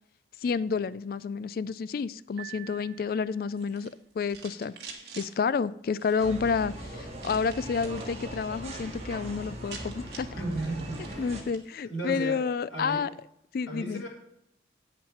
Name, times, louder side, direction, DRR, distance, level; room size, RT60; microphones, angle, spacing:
voice 1, 0.4-4.8 5.2-10.3 11.2-13.1 13.5-14.0, left 5 dB, 50° left, 18 dB, 0.3 m, -30 dB
Piano, 2.4-3.7, right 17 dB, 85° right, 0.7 m, -47 dB
sound 1, 3.5-5.3 5.9-6.4 7.2-8.2 8.5-8.9 9.2-9.3 9.5-11.7, right 5 dB, 55° right, 1.8 m, -47 dB
sound 2, 6.2-11.4, right 1 dB, 35° right, 1.8 m, -40 dB
voice 2, 10.3-11.4 11.8-12.4 12.7-13.0 13.7-14.1, right 2 dB, 85° left, -1 dB, 4.6 m, -34 dB
8.9 x 7.7 x 5.6 m, 0.79 s
head